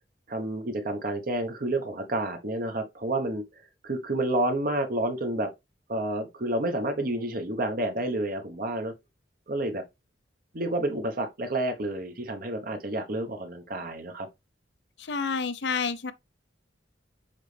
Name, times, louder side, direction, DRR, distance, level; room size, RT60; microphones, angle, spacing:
voice 1, 0.3-5.5 5.9-8.9 9.5-9.8 10.5-14.3, right 1 dB, 50° right, 1.1 m, -30 dB
voice 2, 15.0-16.1, left 5 dB, 70° left, 0.7 m, -29 dB
7.2 x 4.0 x 3.3 m
head